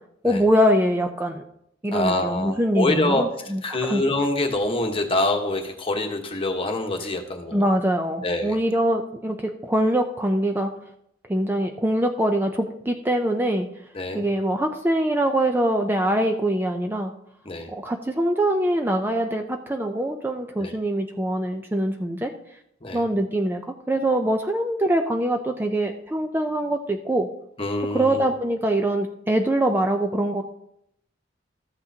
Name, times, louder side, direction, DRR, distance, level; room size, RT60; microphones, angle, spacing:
voice 1, 0.2-1.4 1.8-4.0 7.5-10.7 11.3-13.7 14.1-17.1 17.7-22.3 22.9-23.6 23.9-27.3 27.9-30.4, right 1 dB, 10° right, 4 dB, 0.5 m, -23 dB
voice 2, 1.9-7.7 8.2-8.6 13.9-14.2 17.4-17.7 20.6-20.7 22.8-23.0 27.6-28.3, left 2 dB, 30° left, 4 dB, 1.2 m, -25 dB
13.5 x 8.0 x 2.8 m, 0.76 s
head